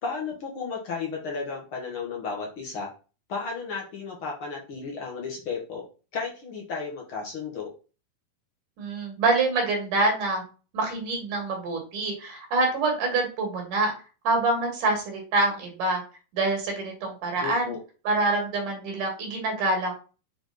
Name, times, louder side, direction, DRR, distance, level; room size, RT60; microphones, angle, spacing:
voice 1, 0.0-2.9 3.3-5.8 6.1-7.7 17.4-17.8, left 5 dB, 55° left, -1 dB, 1.5 m, -33 dB
voice 2, 8.8-10.4 10.7-13.9 14.2-16.0 16.3-17.7 18.0-19.9, right 2 dB, 65° right, 2 dB, 3.2 m, -26 dB
6.6 x 4.4 x 4.1 m, 0.35 s
omnidirectional pair, 4.2 m